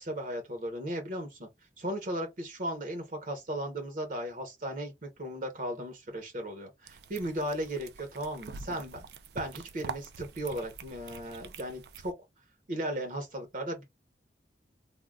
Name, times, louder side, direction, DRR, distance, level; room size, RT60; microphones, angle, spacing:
voice 1, 0.0-1.5 1.8-9.0 9.3-12.1 12.7-13.8, right 1 dB, 45° right, 0.8 m, -36 dB
sound 1, 6.9-12.1, right 5 dB, 65° right, 0.4 m, -45 dB
3.5 x 2.2 x 2.3 m
head